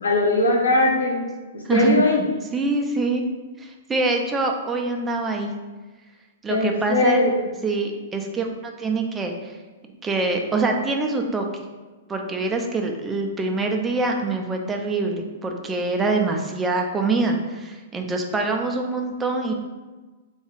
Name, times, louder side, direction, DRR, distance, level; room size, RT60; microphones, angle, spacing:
voice 1, 0.0-2.3 6.5-7.3, left 2 dB, 70° left, -1 dB, 0.7 m, -20 dB
voice 2, 1.6-2.0 2.5-3.2 3.6-5.5 6.4-7.2 7.6-9.5 10.0-11.6 12.1-19.5, right 3 dB, 15° right, 2 dB, 0.4 m, -25 dB
3.4 x 2.3 x 3.1 m, 1.2 s
figure-of-eight pair, 110°, 0 cm